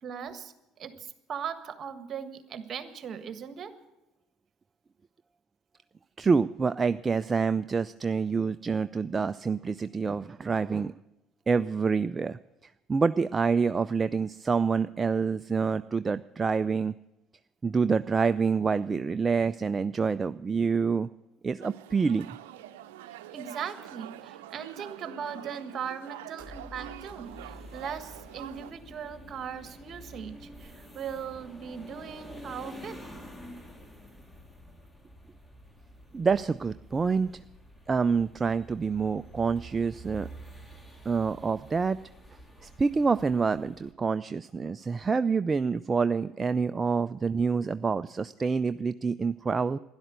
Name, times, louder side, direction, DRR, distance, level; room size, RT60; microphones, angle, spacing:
voice 1, 0.0-0.5 0.8-3.7 23.3-33.0, right 7 dB, 50° right, 10 dB, 1.5 m, -39 dB
voice 2, 6.2-10.9 11.5-16.9 17.6-21.1 21.4-22.3 36.1-37.3 37.9-40.3 41.1-42.0 42.6-49.8, right 5 dB, 30° right, 12 dB, 0.4 m, -27 dB
sound 1, 21.6-28.7, right 13 dB, 85° right, 0.6 m, -45 dB
sound 2, 26.4-43.9, equal, 15° left, 2.3 m, -48 dB
12.0 x 11.0 x 8.1 m, 0.94 s
hypercardioid pair, 70°, 0 cm